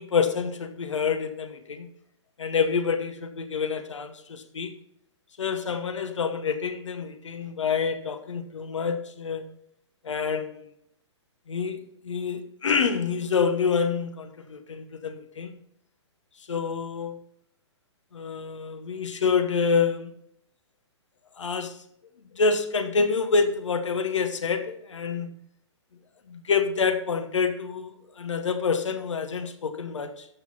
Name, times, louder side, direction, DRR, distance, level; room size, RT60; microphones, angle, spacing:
voice 1, 0.0-1.9 2.4-4.7 5.4-9.4 10.0-10.7 11.5-15.5 16.5-17.2 18.1-20.1 21.4-21.8 22.3-25.3 26.3-30.3, left 5 dB, 80° left, 8 dB, 1.1 m, -27 dB
12.5 x 4.3 x 4.0 m, 0.71 s
hypercardioid pair, 130°, 15 cm